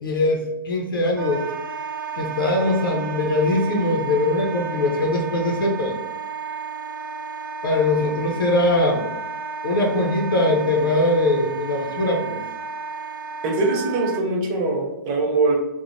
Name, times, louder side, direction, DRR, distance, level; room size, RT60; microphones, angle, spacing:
voice 1, 0.0-1.4 2.1-5.9 7.6-9.1 9.6-12.4, left 2 dB, 90° left, 1 dB, 0.6 m, -21 dB
Wind instrument woodwind instrument, 1.2-14.2, right 6 dB, 85° right, 0.4 m, -33 dB
voice 2, 13.4-15.6, right 3 dB, 20° right, 0 dB, 0.4 m, -22 dB
3.1 x 2.1 x 2.5 m, 0.98 s
hypercardioid pair, 165°, 11 cm